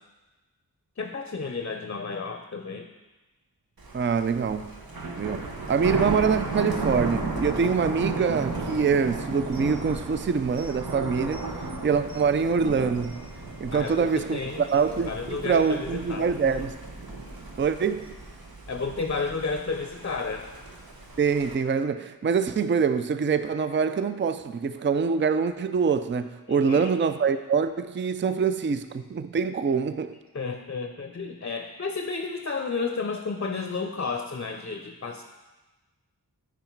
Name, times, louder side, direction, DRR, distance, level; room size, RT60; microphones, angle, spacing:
voice 1, 1.0-2.9 13.7-14.6 15.0-16.3 18.7-20.5 26.5-26.9 30.3-35.2, left 4 dB, 40° left, 5 dB, 0.6 m, -32 dB
Thunder, 3.8-21.5, right 3 dB, 75° right, 1.1 m, -35 dB
voice 2, 3.9-4.8 5.2-11.4 11.8-13.2 13.6-16.8 17.6-18.1 21.2-30.2, right 6 dB, 35° right, 11 dB, 0.4 m, -25 dB
9.3 x 4.9 x 4.5 m, 1.2 s
wide cardioid pair, 60°, 37 cm